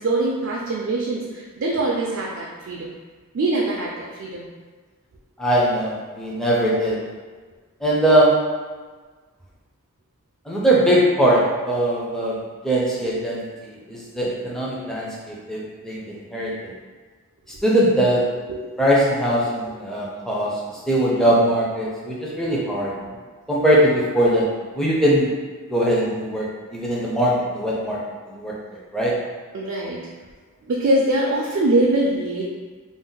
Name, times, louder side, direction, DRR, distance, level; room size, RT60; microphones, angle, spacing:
voice 1, 0.0-2.9 3.3-4.5 18.3-18.6 23.1-23.2 29.5-30.0 30.6-32.4, right 2 dB, 60° right, -3 dB, 0.3 m, -23 dB
voice 2, 5.4-7.0 7.8-8.3 10.5-12.4 12.6-13.4 13.9-16.7 17.6-18.2 18.8-20.5 20.9-22.9 23.5-24.4 24.7-25.3 25.7-26.5 26.7-28.0 28.3-28.5 28.9-29.1, right 1 dB, ahead, -6 dB, 0.4 m, -20 dB
2.6 x 2.0 x 3.7 m, 1.4 s
head